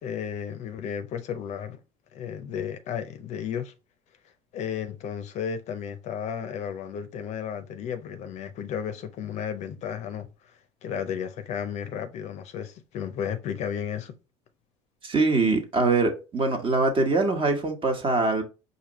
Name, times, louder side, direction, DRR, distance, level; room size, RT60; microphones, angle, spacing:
voice 1, 0.0-1.8 2.1-3.7 4.5-10.3 10.8-14.2, left 8 dB, 50° left, 0.6 m, -33 dB
voice 2, 15.0-18.4, right 3 dB, 35° right, 1.2 m, -23 dB
4.9 x 2.6 x 3.0 m
hypercardioid pair, 80°, 15 cm